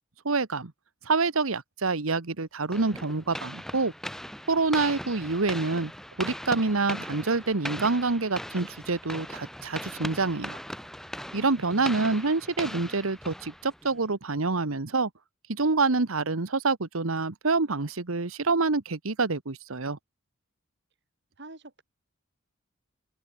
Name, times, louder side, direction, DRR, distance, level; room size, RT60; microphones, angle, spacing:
voice 1, 0.2-0.7 1.0-3.9 4.5-5.9 6.2-10.6 11.3-15.1 15.5-20.0, right 3 dB, 90° right, 1.4 m, -27 dB
sound 1, 2.7-14.0, equal, ahead, 2.2 m, -39 dB
voice 2, 11.7-12.2 21.4-21.8, right 2 dB, 55° right, 3.4 m, -47 dB
open air
head